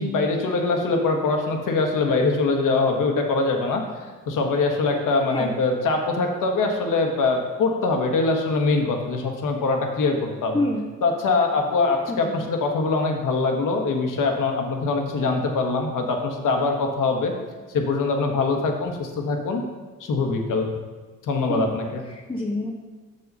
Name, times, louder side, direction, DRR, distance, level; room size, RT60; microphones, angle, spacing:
voice 1, 0.0-3.8 4.3-10.6 11.0-17.3 17.7-19.6 20.0-20.7 21.2-22.0, left 3 dB, 55° left, 3 dB, 1.4 m, -23 dB
voice 2, 10.5-10.9 12.2-12.4 21.5-21.7 22.1-22.7, left 2 dB, 15° left, 1 dB, 0.8 m, -27 dB
6.4 x 5.5 x 5.4 m, 1.3 s
supercardioid pair, 65°, 37 cm